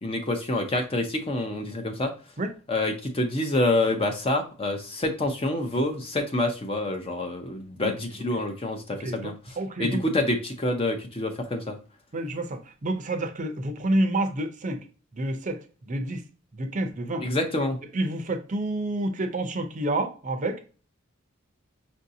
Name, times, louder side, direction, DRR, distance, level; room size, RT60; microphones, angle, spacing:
voice 1, 0.0-2.1 2.7-11.8 17.2-17.8, left 1 dB, 25° left, 0.6 m, -27 dB
voice 2, 9.0-9.3 9.6-10.0 12.1-14.8 15.1-16.2 16.5-17.3 17.9-20.6, right 1 dB, 35° right, 0.5 m, -29 dB
5.5 x 2.7 x 2.6 m
head